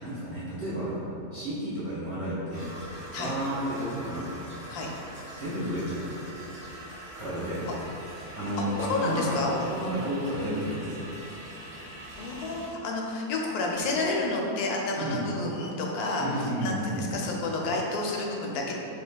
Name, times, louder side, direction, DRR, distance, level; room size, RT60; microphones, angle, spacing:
voice 1, 0.0-1.0 1.3-2.7 3.2-4.3 5.4-6.2 7.1-7.7 8.3-11.0 15.0-15.2 16.2-17.2, equal, 25° right, -11 dB, 0.9 m, -31 dB
sound 1, 2.5-12.7, right 1 dB, 30° left, 0.7 m, -43 dB
voice 2, 8.6-9.6 12.2-18.7, left 2 dB, 85° left, -1 dB, 1.1 m, -30 dB
5.0 x 3.4 x 2.3 m, 2.8 s
omnidirectional pair, 1.6 m